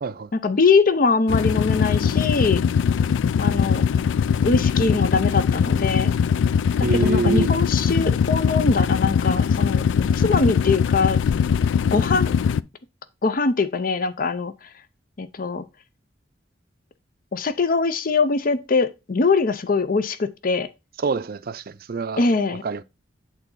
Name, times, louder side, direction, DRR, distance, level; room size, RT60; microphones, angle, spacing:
voice 1, 0.3-2.6 3.4-3.8 4.4-6.1 6.9-11.2 11.9-12.3 13.2-14.5 15.2-15.6 17.3-20.7 22.2-22.6, left 4 dB, 50° left, 0.6 m, -22 dB
sound 1, 1.3-12.6, left 7 dB, 85° left, 0.3 m, -21 dB
voice 2, 6.8-7.5 21.0-22.8, right 4 dB, 50° right, 0.5 m, -26 dB
8.2 x 3.9 x 4.0 m
head